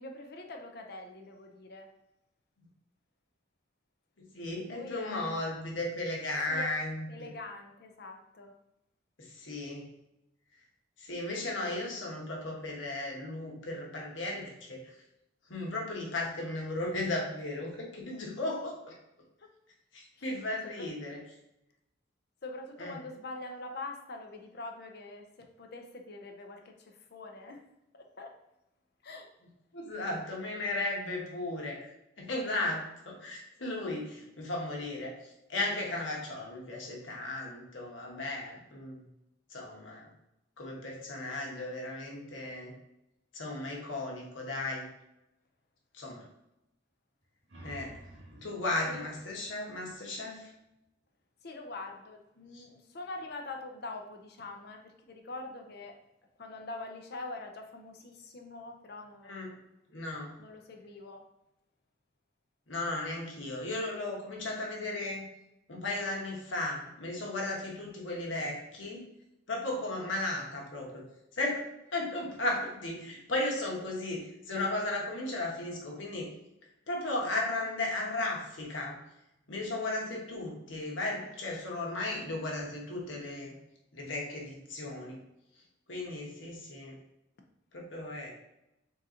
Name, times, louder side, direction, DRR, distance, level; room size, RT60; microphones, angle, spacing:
voice 1, 0.0-1.9 4.7-5.5 6.5-6.7 7.1-8.5 19.4-19.5 20.2-20.4 20.8-20.9 22.4-27.6 27.9-28.3 29.0-29.3 48.8-49.1 51.4-56.0 56.4-59.6 60.4-61.2, left 2 dB, 60° left, 4 dB, 0.6 m, -44 dB
voice 2, 4.3-7.3 9.2-9.9 11.0-14.9 15.5-19.0 19.9-21.2 22.8-23.0 29.7-31.9 32.2-39.0 39.5-40.1 40.6-42.7 43.3-44.9 45.9-46.3 47.6-48.0 48.4-50.5 52.5-52.6 59.3-59.5 59.9-60.3 62.7-65.3 65.7-69.1 69.5-71.0 71.3-71.6 71.9-76.3 76.9-79.0 79.5-83.5 83.9-85.2 85.9-87.0 87.7-88.3, left 2 dB, 80° left, -1 dB, 1.2 m, -35 dB
sound 1, 47.2-50.7, right 1 dB, 65° right, 1.1 m, -53 dB
3.8 x 2.8 x 3.7 m, 0.88 s
head